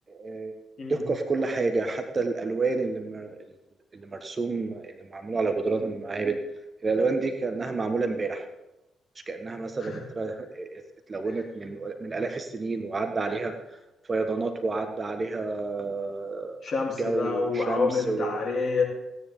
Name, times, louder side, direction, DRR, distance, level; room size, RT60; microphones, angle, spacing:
voice 1, 0.1-0.5 0.9-3.5 3.9-6.4 6.8-8.4 9.3-10.8 11.1-13.5 14.1-16.6 17.0-18.4, right 3 dB, 30° right, 6 dB, 1.3 m, -29 dB
voice 2, 16.6-18.8, left 4 dB, 50° left, -3 dB, 3.8 m, -27 dB
16.0 x 9.8 x 3.8 m, 0.95 s
figure-of-eight pair, 40°, 0 cm